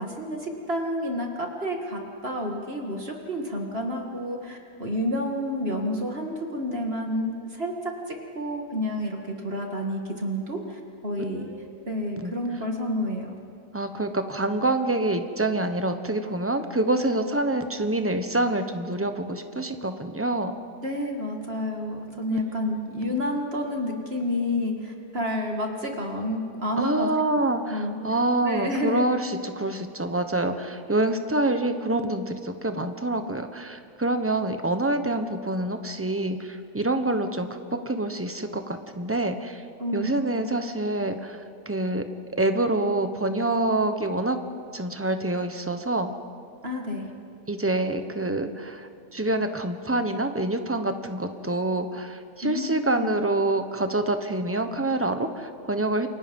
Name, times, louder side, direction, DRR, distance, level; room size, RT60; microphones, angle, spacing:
voice 1, 0.0-11.5 11.9-13.3 20.8-27.1 27.7-28.0 28.4-29.0 39.8-40.2 46.6-47.1 52.4-53.1, left 1 dB, 40° right, 1 dB, 2.3 m, -30 dB
voice 2, 11.2-11.6 12.2-12.4 13.7-20.6 22.3-22.4 23.0-23.2 26.8-37.6 37.8-39.6 39.9-41.4 41.7-42.0 42.4-44.4 44.7-46.1 47.5-56.1, right 2 dB, 10° right, 7 dB, 0.9 m, -26 dB
29.0 x 23.0 x 5.4 m, 2.3 s
omnidirectional pair, 1.7 m